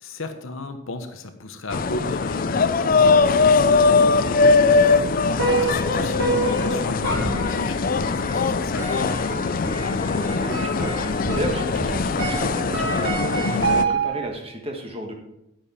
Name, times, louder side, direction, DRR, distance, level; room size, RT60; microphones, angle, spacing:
voice 1, 0.0-5.0 5.5-9.2, left 2 dB, 75° left, 7 dB, 1.1 m, -35 dB
sound 1, 1.7-13.8, left 4 dB, 40° left, 0.4 m, -21 dB
sound 2, 5.4-14.3, right 3 dB, 90° right, 4.0 m, -27 dB
voice 2, 10.1-15.1, right 1 dB, 25° right, 3 dB, 1.5 m, -33 dB
9.4 x 8.8 x 4.3 m, 0.85 s
head